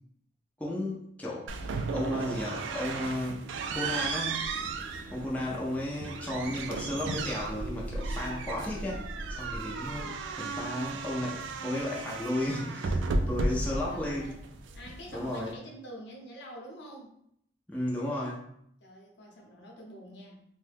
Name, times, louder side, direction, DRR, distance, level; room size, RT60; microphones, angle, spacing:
voice 1, 0.6-1.5 1.9-3.4 3.7-4.5 5.1-14.4 15.1-15.5 17.7-18.5, left 1 dB, 10° left, -5 dB, 0.4 m, -34 dB
sound 1, 1.5-15.5, right 3 dB, 90° right, 0.3 m, -35 dB
Wind, 3.1-11.9, equal, 35° right, 0.7 m, -52 dB
voice 2, 13.4-14.4 14.7-17.1 18.8-20.4, equal, 70° left, -2 dB, 0.7 m, -47 dB
2.7 x 2.1 x 3.3 m, 0.71 s
head